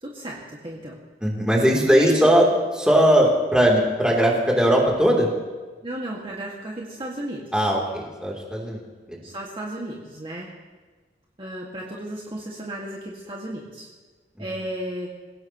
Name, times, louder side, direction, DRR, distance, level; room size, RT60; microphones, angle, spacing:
voice 1, 0.0-1.0 1.9-2.3 5.8-7.7 9.2-10.5 11.4-13.9 14.4-15.1, right 1 dB, 30° right, -3 dB, 1.9 m, -33 dB
voice 2, 1.2-2.5 2.7-5.3 7.5-8.8 9.1-9.2 14.4-14.5, equal, 5° right, -2 dB, 3.1 m, -19 dB
27.0 x 17.5 x 3.0 m, 1.3 s
head